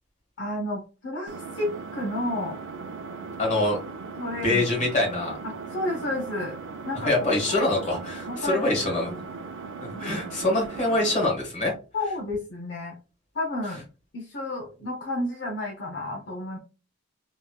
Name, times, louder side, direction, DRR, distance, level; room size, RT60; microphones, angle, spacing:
voice 1, 0.4-2.6 4.2-4.9 5.4-6.6 6.9-7.7 8.2-9.2 9.9-10.2 11.9-13.0 13.3-13.8 14.1-16.6, left 1 dB, 60° left, -1 dB, 0.6 m, -32 dB
Engine, 1.3-11.3, right 4 dB, 65° right, 0.4 m, -38 dB
voice 2, 3.4-3.8 4.4-5.4 7.0-9.1 9.8-11.7, left 2 dB, 35° left, -1 dB, 1.5 m, -24 dB
3.0 x 2.9 x 2.3 m, 0.33 s
head